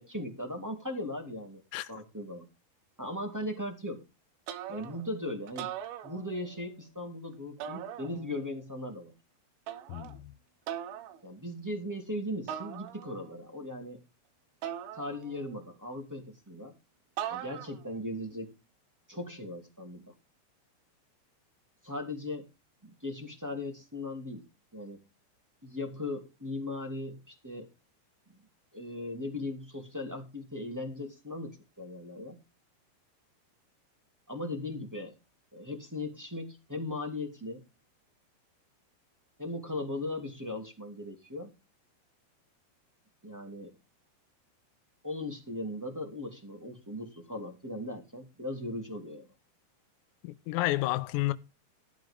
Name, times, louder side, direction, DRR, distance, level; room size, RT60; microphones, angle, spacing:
voice 1, 0.0-1.6 1.9-2.5 3.0-4.0 4.7-5.7 6.0-9.1 11.2-14.0 14.9-16.7 17.3-18.5 19.1-20.1 21.8-22.4 22.8-24.4 24.7-25.0 25.6-27.7 28.3-28.4 28.7-32.4 34.3-35.1 35.5-37.6 39.4-41.5 43.2-43.7 45.0-49.3, left 1 dB, 5° right, 1.4 m, -38 dB
sound 1, 4.5-5.1 5.5-6.6 7.6-8.5 9.7-10.2 10.7-11.2 12.5-13.3 14.6-15.6 17.2-17.9, right 10 dB, 80° right, 3.7 m, -40 dB
voice 2, 9.9-10.3 50.2-51.3, left 17 dB, 85° left, 3.6 m, -30 dB
15.0 x 10.5 x 3.7 m
omnidirectional pair, 5.8 m